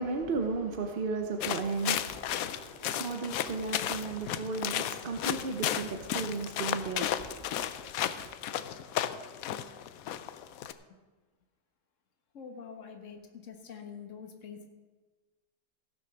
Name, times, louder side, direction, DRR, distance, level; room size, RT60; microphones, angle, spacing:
voice 1, 0.0-7.6, right 4 dB, 45° right, 0.7 m, -35 dB
sound 1, 1.4-10.7, left 11 dB, 70° left, 0.9 m, -34 dB
voice 2, 12.3-14.7, left 6 dB, 50° left, 1.5 m, -45 dB
15.5 x 6.6 x 5.9 m
omnidirectional pair, 1.8 m